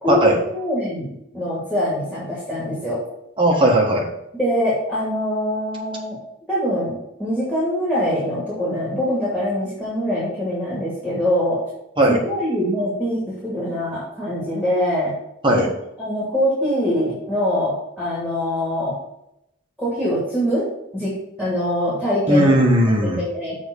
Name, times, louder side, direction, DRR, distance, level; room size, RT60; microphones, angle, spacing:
voice 1, 0.0-3.0 4.3-6.2 6.5-11.6 12.1-15.1 15.5-15.6 16.0-19.0 19.8-20.7 20.9-22.5 23.0-23.6, equal, 5° left, -7 dB, 2.5 m, -23 dB
voice 2, 3.4-4.0 12.0-12.2 15.4-15.7 22.3-23.2, right 1 dB, 25° right, -1 dB, 1.5 m, -16 dB
7.3 x 4.0 x 6.5 m, 0.82 s
head